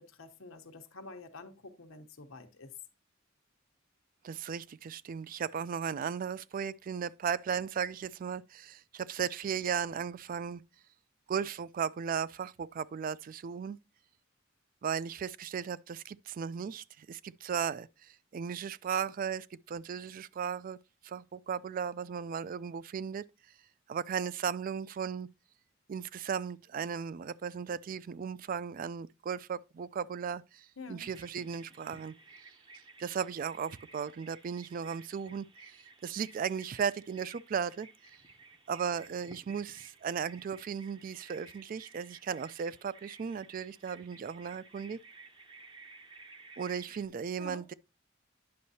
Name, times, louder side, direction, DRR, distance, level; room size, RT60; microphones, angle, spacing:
voice 1, 0.0-2.7 30.8-31.1 47.4-47.6, left 3 dB, 90° left, 1.0 m, -48 dB
voice 2, 4.2-10.6 11.3-13.8 14.8-20.8 21.0-23.2 23.9-25.3 25.9-32.1 33.0-37.9 38.7-45.0 46.6-47.7, right 7 dB, 45° right, 0.3 m, -36 dB
Bird vocalization bird call bird song, 31.0-47.1, right 3 dB, 25° right, 0.7 m, -55 dB
9.5 x 6.3 x 2.8 m
head